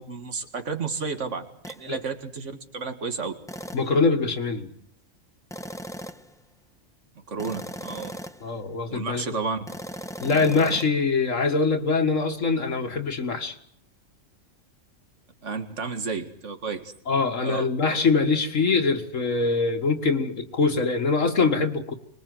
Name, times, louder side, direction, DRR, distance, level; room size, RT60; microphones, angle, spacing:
voice 1, 0.0-3.3 7.3-8.2 8.9-9.7 15.4-16.9 17.4-18.0, right 4 dB, 65° right, 8 dB, 2.2 m, -32 dB
sound 1, 1.6-1.9 3.5-4.0 5.5-6.3 7.4-8.5 9.7-10.9, equal, 5° left, 0.8 m, -38 dB
voice 2, 3.7-4.7 8.4-9.2 10.2-13.5 17.1-21.9, left 4 dB, 75° left, 4 dB, 2.0 m, -23 dB
24.5 x 21.0 x 7.8 m, 0.65 s
omnidirectional pair, 1.4 m